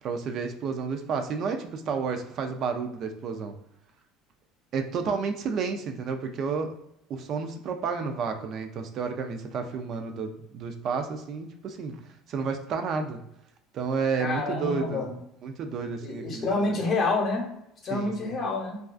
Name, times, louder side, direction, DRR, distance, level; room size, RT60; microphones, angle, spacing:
voice 1, 0.0-3.5 4.7-6.7 7.1-12.0 12.3-13.2 13.7-15.1 15.4-16.8 17.9-18.4, right 5 dB, 50° right, 5 dB, 0.3 m, -31 dB
voice 2, 14.2-15.1 16.0-17.4 17.8-18.8, left 3 dB, 40° left, 0 dB, 0.7 m, -28 dB
2.3 x 2.3 x 2.3 m, 0.78 s
supercardioid pair, 110°, 0 cm